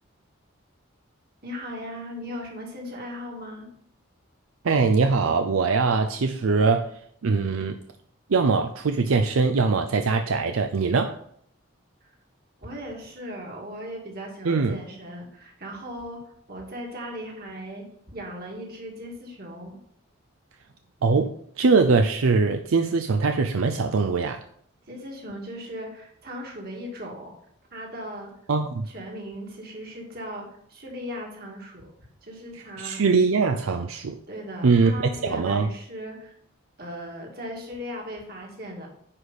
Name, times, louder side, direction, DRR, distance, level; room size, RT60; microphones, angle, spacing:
voice 1, 1.4-3.7 12.0-12.1 12.6-19.8 24.9-27.4 27.7-28.4 28.8-31.9 32.2-33.0 34.3-36.3 36.8-38.9, equal, 45° right, 2.1 m, -38 dB
voice 2, 4.6-6.9 7.2-7.8 8.3-11.2 14.4-14.8 21.0-24.4 28.5-28.9 32.8-34.2 34.6-35.7, right 4 dB, 80° right, 0.5 m, -22 dB
9.7 x 4.9 x 4.1 m
head